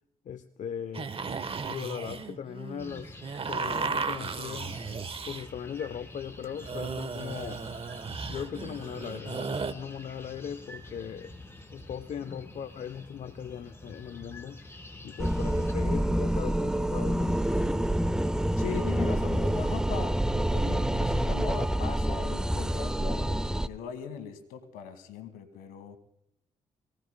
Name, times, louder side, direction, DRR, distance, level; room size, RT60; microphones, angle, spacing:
voice 1, 0.2-1.1 1.7-3.1 3.4-4.8 5.3-7.6 8.3-11.3 11.7-14.6 15.0-17.4, left 8 dB, 60° left, 10 dB, 0.8 m, -39 dB
sound 1, 0.9-5.5 6.4-9.7, right 5 dB, 40° right, 1.1 m, -35 dB
sound 2, 2.8-15.7, left 2 dB, 15° left, 4.7 m, -47 dB
sound 3, 15.2-23.7, right 1 dB, 5° right, 0.6 m, -27 dB
voice 2, 18.6-26.0, left 7 dB, 80° left, 10 dB, 1.6 m, -39 dB
23.0 x 17.5 x 2.2 m, 0.78 s
hypercardioid pair, 45°, 15 cm